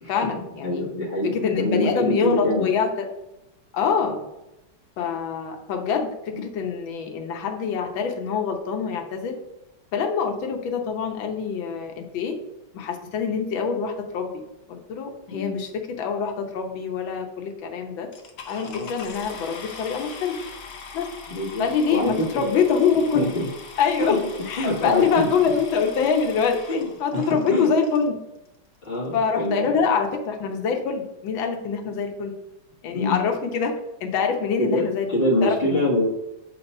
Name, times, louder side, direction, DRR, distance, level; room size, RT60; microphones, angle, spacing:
voice 1, 0.1-0.8 1.3-3.1 3.7-4.2 5.0-9.3 9.9-12.4 12.7-14.4 14.7-18.1 18.5-20.4 20.9-21.1 21.6-23.2 23.8-24.2 24.5-28.2 29.1-32.3 32.8-35.8, left 6 dB, 75° left, 3 dB, 1.6 m, -25 dB
voice 2, 0.6-2.7 4.0-4.1 6.3-6.4 15.3-15.6 18.6-18.9 21.3-22.6 23.1-23.5 24.0-24.2 24.6-25.3 26.7-27.7 28.8-29.8 32.9-33.2 34.6-36.1, left 1 dB, 30° left, -6 dB, 1.4 m, -25 dB
sound 1, 18.1-28.1 28.8-28.9 29.4-29.5 29.7-30.1, left 5 dB, 60° left, 0.9 m, -41 dB
7.6 x 2.8 x 5.4 m, 0.92 s
omnidirectional pair, 2.2 m